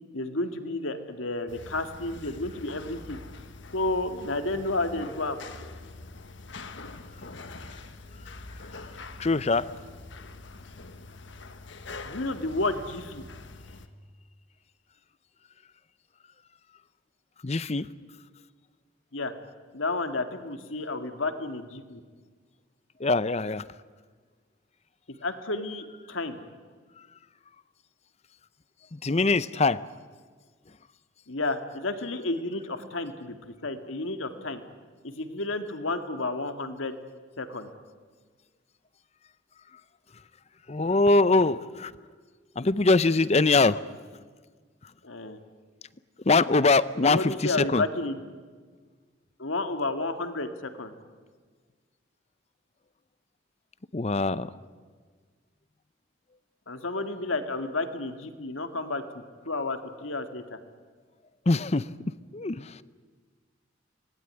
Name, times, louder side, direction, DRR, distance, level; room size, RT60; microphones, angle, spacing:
voice 1, 0.1-3.2 3.7-5.4 12.0-13.2 19.1-19.3 19.7-22.0 25.1-26.4 31.3-34.6 35.0-37.0 37.4-37.7 45.0-45.4 47.0-48.4 49.4-50.9 56.7-60.6, left 2 dB, 85° left, 8 dB, 2.1 m, -31 dB
sound 1, 1.5-13.9, left 3 dB, 65° left, 1.4 m, -44 dB
voice 2, 9.2-9.7 17.4-17.9 23.0-23.6 28.9-29.8 40.7-41.9 42.6-43.8 46.3-47.8 53.9-54.5 61.5-61.9 62.3-62.8, left 3 dB, 35° left, 17 dB, 0.6 m, -23 dB
25.5 x 19.5 x 9.7 m, 1.5 s
head